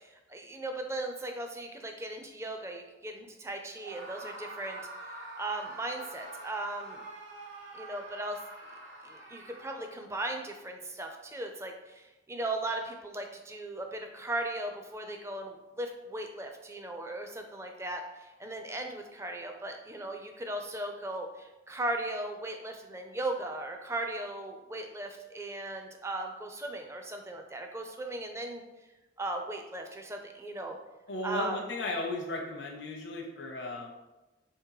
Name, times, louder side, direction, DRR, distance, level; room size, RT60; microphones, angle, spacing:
voice 1, 0.0-4.8 5.4-7.0 7.7-8.4 9.0-28.6 29.2-30.8 31.2-31.6, right 2 dB, 15° right, 4 dB, 0.4 m, -37 dB
Screaming, 3.8-10.0, right 2 dB, 75° right, 1.0 m, -45 dB
voice 2, 31.1-33.9, left 2 dB, 65° left, 0 dB, 0.6 m, -35 dB
3.7 x 3.0 x 4.7 m, 1.0 s
head